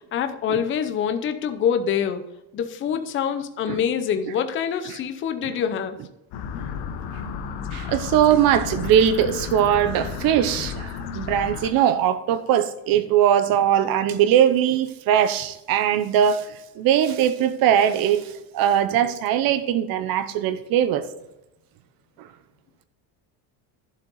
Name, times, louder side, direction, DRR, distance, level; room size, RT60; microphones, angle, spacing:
voice 1, 0.0-2.3 2.5-6.0, left 8 dB, 25° left, 0.6 m, -25 dB
sound 1, 6.3-11.7, left 7 dB, 55° left, 1.1 m, -32 dB
voice 2, 7.7-21.1 22.2-22.3, right 10 dB, 45° right, 0.9 m, -21 dB
11.5 x 7.5 x 4.0 m
cardioid pair, 170°, 47 cm